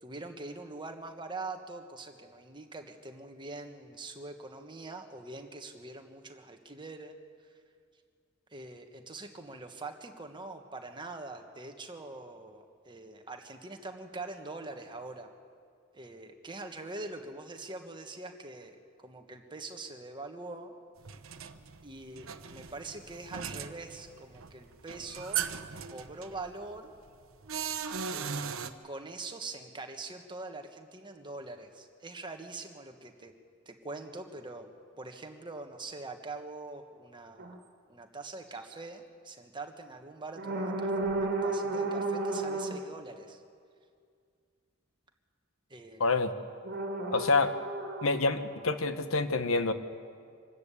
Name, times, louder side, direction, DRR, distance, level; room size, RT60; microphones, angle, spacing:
voice 1, 0.0-7.1 8.5-15.3 15.9-20.7 21.8-25.4 25.9-26.9 28.1-33.3 33.6-34.7 35.0-37.6 37.9-43.4 45.7-46.0, right 3 dB, 25° right, 5 dB, 1.5 m, -43 dB
sound 1, 21.0-28.7, right 7 dB, 85° right, 0.9 m, -38 dB
sound 2, 37.4-37.6 38.6-38.7 40.4-42.8 46.6-48.7, right 2 dB, 55° right, 2.2 m, -33 dB
voice 2, 46.0-46.3 47.1-47.5 48.0-49.7, left 3 dB, 85° left, 10 dB, 1.1 m, -27 dB
25.0 x 13.5 x 8.5 m, 2.2 s
head